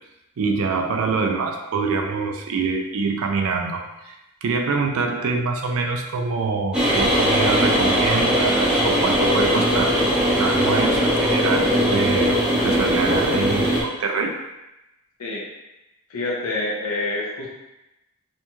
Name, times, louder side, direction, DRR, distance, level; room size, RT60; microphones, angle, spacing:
voice 1, 0.4-4.1 4.4-14.4, right 4 dB, 65° right, 3 dB, 0.4 m, -25 dB
sound 1, 6.7-13.8, equal, 5° right, 0.7 m, -20 dB
voice 2, 16.1-17.5, left 2 dB, 85° left, -3 dB, 0.7 m, -27 dB
2.5 x 2.2 x 2.9 m, 0.94 s
head